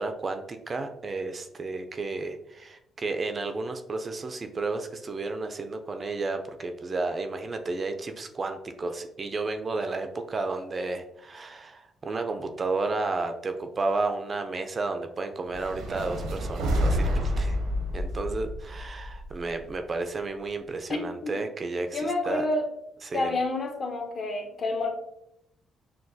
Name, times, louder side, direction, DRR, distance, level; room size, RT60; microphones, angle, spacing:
voice 1, 0.0-17.6 17.9-22.4 23.0-23.4, right 3 dB, 30° right, 7 dB, 0.3 m, -32 dB
sound 1, 15.5-19.7, equal, 90° right, 0.8 m, -29 dB
voice 2, 20.9-21.3 21.9-22.7 23.1-24.9, left 2 dB, 40° left, 4 dB, 0.7 m, -29 dB
5.9 x 2.2 x 2.6 m, 0.80 s
cardioid pair, 125°, 0 cm